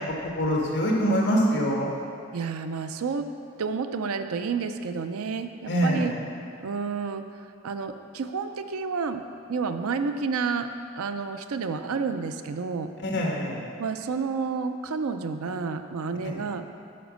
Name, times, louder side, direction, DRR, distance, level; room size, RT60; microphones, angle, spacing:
voice 1, 0.0-1.9 5.7-6.1 13.0-13.6 16.2-16.4, equal, 50° left, -2 dB, 1.7 m, -24 dB
voice 2, 2.3-3.3 3.6-6.1 6.6-10.7 10.9-12.9 13.8-16.6, right 5 dB, 90° right, 8 dB, 0.5 m, -30 dB
11.0 x 5.1 x 6.3 m, 2.4 s
head